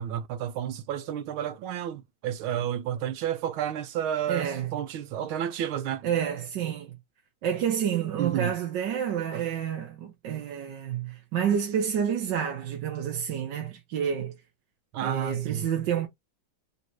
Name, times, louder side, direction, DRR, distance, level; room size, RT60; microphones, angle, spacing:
voice 1, 0.0-6.0 8.2-8.5 14.9-15.7, right 10 dB, 90° right, 1.6 m, -31 dB
voice 2, 4.3-4.7 6.0-6.9 7.4-14.3 15.0-16.1, right 8 dB, 65° right, 1.4 m, -29 dB
4.1 x 2.9 x 4.4 m
omnidirectional pair, 2.2 m